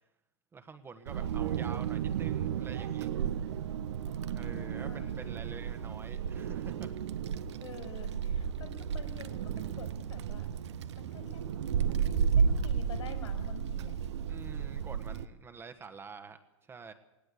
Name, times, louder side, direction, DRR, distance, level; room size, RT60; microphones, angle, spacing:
voice 1, 0.5-3.1 4.3-6.9 14.3-16.9, right 5 dB, 15° right, 7 dB, 1.5 m, -47 dB
Wind, 1.1-15.2, right 7 dB, 60° right, 1.2 m, -33 dB
sound 1, 3.5-11.6, right 7 dB, 80° right, 3.1 m, -55 dB
voice 2, 4.4-5.1 7.6-10.5 10.9-11.5 11.9-14.0, left 4 dB, 70° left, 6 dB, 6.6 m, -48 dB
19.5 x 18.0 x 8.6 m, 0.88 s
hypercardioid pair, 115°, 16 cm